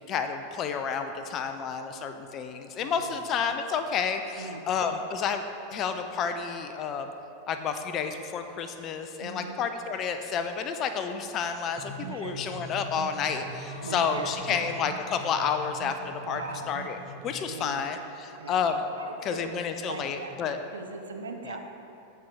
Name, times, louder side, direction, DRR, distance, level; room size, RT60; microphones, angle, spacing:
voice 1, 0.1-5.4 5.7-7.1 7.5-16.4 16.7-17.0 17.2-18.8 19.2-20.6 21.4-21.6, left 6 dB, 30° left, 8 dB, 0.5 m, -30 dB
voice 2, 2.8-3.2 4.4-4.7 9.2-9.6 12.1-12.4 13.8-14.3 16.2-16.7 17.4-17.8 18.4-18.7 19.0-20.4 20.7-21.6, right 4 dB, 70° right, 4 dB, 0.6 m, -40 dB
sound 1, 11.7-17.4, right 2 dB, 40° right, 1.3 m, -42 dB
sound 2, 12.7-14.9, left 1 dB, 10° left, 1.3 m, -50 dB
13.5 x 4.6 x 3.6 m, 2.8 s
figure-of-eight pair, 90°, 0 cm